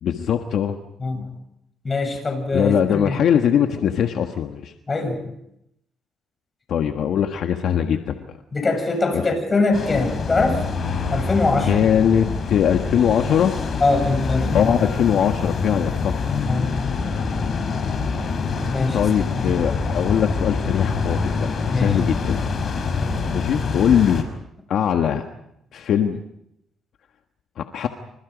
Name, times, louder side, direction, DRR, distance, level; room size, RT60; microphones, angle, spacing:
voice 1, 0.0-0.8 2.5-4.7 6.7-8.3 9.1-9.2 11.7-13.6 14.5-16.2 18.9-22.4 23.2-24.3 24.7-25.2 25.7-26.2 27.6-27.9, left 8 dB, 70° left, 5 dB, 1.5 m, -21 dB
voice 2, 1.0-1.3 1.8-3.2 4.9-5.2 8.5-10.6 11.1-11.8 13.8-14.8 16.4-17.2 18.7-19.0 19.4-19.6 21.7-21.9 23.0-23.3, left 3 dB, 30° left, 6 dB, 7.8 m, -23 dB
sound 1, 9.7-24.2, left 4 dB, 50° left, 5.2 m, -25 dB
28.5 x 26.0 x 5.2 m, 0.81 s
cardioid pair, 90°, 0 cm